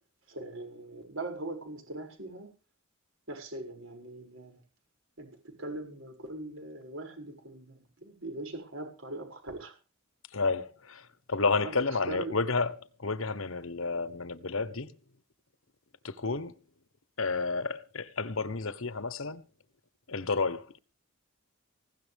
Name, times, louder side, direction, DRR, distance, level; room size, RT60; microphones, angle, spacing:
voice 1, 0.3-2.5 3.3-4.6 5.2-9.8 11.6-12.4, right 2 dB, 60° right, 6.8 m, -41 dB
voice 2, 10.3-14.9 16.0-16.6 17.2-19.4 20.1-20.8, left 4 dB, 65° left, 1.2 m, -31 dB
19.5 x 17.0 x 3.6 m
head